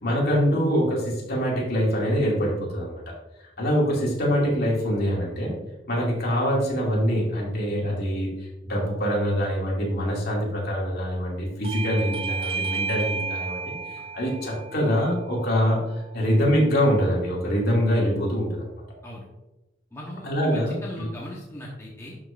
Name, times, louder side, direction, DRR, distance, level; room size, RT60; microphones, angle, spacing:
voice 1, 0.0-3.0 3.6-5.5 5.9-8.3 8.7-18.7 20.2-21.1, equal, 55° left, -4 dB, 2.5 m, -24 dB
Bell / Doorbell, 11.6-16.8, right 5 dB, 30° right, 0.3 m, -33 dB
voice 2, 19.9-22.2, equal, 15° left, -5 dB, 1.1 m, -38 dB
11.5 x 5.4 x 2.6 m, 0.99 s
head